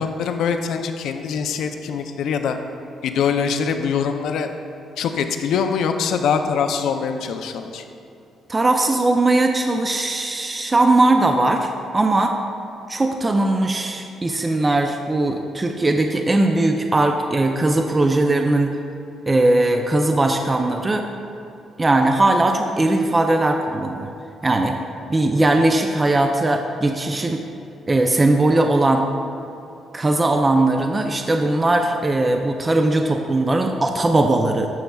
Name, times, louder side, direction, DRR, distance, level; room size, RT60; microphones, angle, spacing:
voice 1, 0.0-2.6 3.0-4.5 5.0-7.8, left 6 dB, 80° left, 7 dB, 0.5 m, -23 dB
voice 2, 8.5-12.3 12.9-18.8 19.3-21.1 21.8-24.1 24.4-24.8 25.1-27.4 27.9-29.1 29.9-34.7, right 2 dB, 25° right, 4 dB, 0.4 m, -19 dB
11.5 x 6.0 x 2.3 m, 2.7 s
cardioid pair, 90°, 0 cm